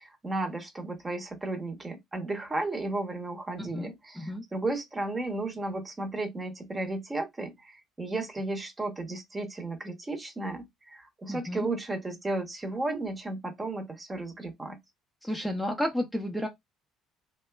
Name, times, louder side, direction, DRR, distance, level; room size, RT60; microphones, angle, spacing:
voice 1, 0.0-14.8, right 2 dB, 25° right, 0.8 m, -34 dB
voice 2, 3.6-4.4 11.3-11.7 15.2-16.5, equal, ahead, 0.5 m, -32 dB
2.8 x 2.2 x 2.2 m
hypercardioid pair, 55°, 0 cm